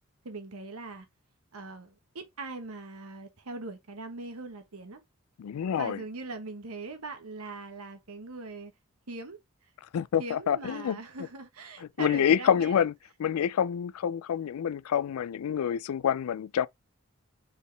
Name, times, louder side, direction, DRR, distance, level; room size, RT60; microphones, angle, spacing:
voice 1, 0.2-1.1 1.5-5.0 5.7-8.7 9.1-9.4 10.2-12.9, right 3 dB, 85° right, 1.1 m, -41 dB
voice 2, 5.4-6.0 9.9-11.0 12.0-12.9 13.2-16.7, left 8 dB, 85° left, 0.3 m, -27 dB
4.2 x 3.6 x 3.3 m
head